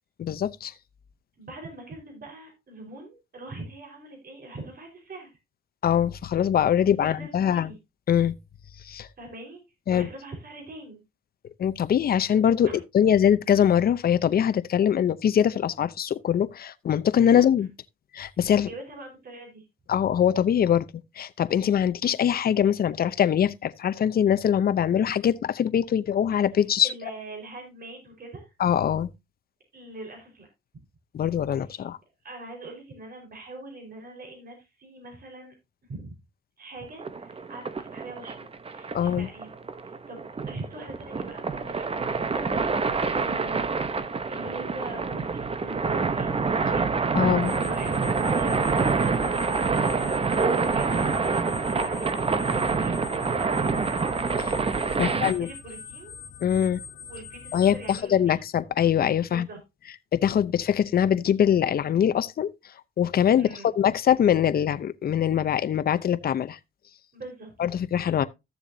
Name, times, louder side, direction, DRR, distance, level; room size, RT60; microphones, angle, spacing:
voice 1, 0.2-0.7 5.8-7.7 8.1-8.3 8.9-9.1 9.9-10.1 11.6-12.7 12.9-17.7 18.1-18.7 19.9-20.9 21.2-26.9 28.6-29.1 31.1-32.0 38.9-39.3 47.1-47.5 54.4-54.5 55.0-55.5 56.4-56.8 57.5-59.5 60.1-62.5 63.0-66.6 67.6-68.2, left 9 dB, 50° left, 0.7 m, -23 dB
voice 2, 1.4-5.3 7.0-7.8 8.9-9.6 9.9-11.0 12.6-12.8 17.2-17.4 18.6-19.7 26.8-28.5 29.7-30.5 31.7-31.9 32.2-35.5 35.9-36.1 36.6-39.5 39.8-42.7 43.0-43.7 44.2-46.9 47.6-47.9 48.2-51.4 51.7-53.9 54.9-56.2 57.0-58.4 59.2-59.6 63.4-63.7 67.1-67.5, right 2 dB, 50° right, 4.7 m, -42 dB
sound 1, 37.0-55.3, right 4 dB, 30° right, 0.9 m, -27 dB
sound 2, 47.4-58.0, left 6 dB, 80° left, 1.4 m, -43 dB
14.0 x 7.1 x 2.7 m
cardioid pair, 90°, 20 cm